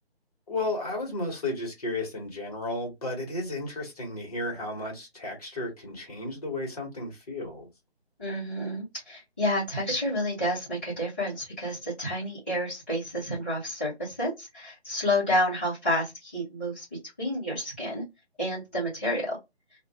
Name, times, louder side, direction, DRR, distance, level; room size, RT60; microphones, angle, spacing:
voice 1, 0.5-7.7, left 2 dB, 35° left, 1.2 m, -33 dB
voice 2, 8.2-16.8 17.2-18.0 18.4-19.4, left 1 dB, 10° left, 0.6 m, -29 dB
2.4 x 2.2 x 3.3 m
figure-of-eight pair, 150°, 33 cm